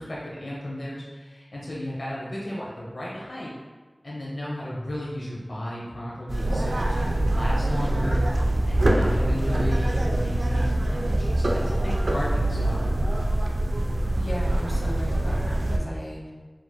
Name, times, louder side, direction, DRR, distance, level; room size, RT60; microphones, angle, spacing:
voice 1, 0.0-3.5 4.0-12.8, left 1 dB, 80° left, -6 dB, 0.9 m, -34 dB
sound 1, 6.3-15.8, right 1 dB, 85° right, 0.4 m, -24 dB
voice 2, 14.2-16.3, equal, 40° left, -4 dB, 1.1 m, -35 dB
6.3 x 2.9 x 2.2 m, 1.3 s
wide cardioid pair, 40°, 0 cm